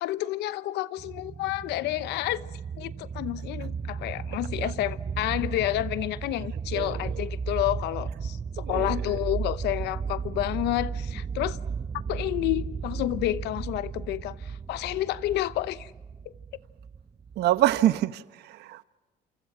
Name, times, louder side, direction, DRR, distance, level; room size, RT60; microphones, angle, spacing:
voice 1, 0.0-2.4 2.8-11.6 12.1-15.9 16.3-16.4, left 15 dB, 85° left, 0.9 m, -30 dB
sound 1, 1.0-18.0, right 6 dB, 25° right, 0.8 m, -35 dB
voice 2, 6.7-7.2 8.6-9.2 17.4-18.8, right 14 dB, 75° right, 0.9 m, -26 dB
28.5 x 27.5 x 6.1 m
cardioid pair, 110°, 17 cm